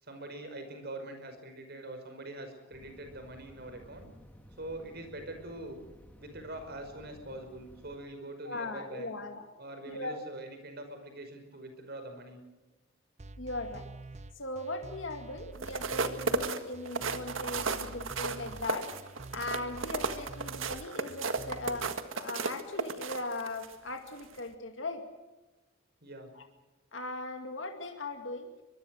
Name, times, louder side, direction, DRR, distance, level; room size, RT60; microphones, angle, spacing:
voice 1, 0.0-4.1 4.5-5.8 6.2-9.1 9.6-12.4 26.0-26.3, right 1 dB, 50° right, 7 dB, 5.4 m, -43 dB
sound 1, 2.7-8.0, equal, 10° left, 2.2 m, -55 dB
voice 2, 8.4-9.5 9.9-10.2 13.4-13.9 14.4-18.9 19.3-21.9 22.2-25.0 26.3-26.4 26.9-28.5, left 2 dB, 65° left, 5 dB, 2.2 m, -39 dB
sound 2, 13.2-21.9, right 2 dB, 35° right, 0.7 m, -47 dB
sound 3, 15.5-23.7 24.2-24.4, right 4 dB, 75° right, 1.8 m, -34 dB
24.0 x 22.5 x 6.4 m, 1.1 s
head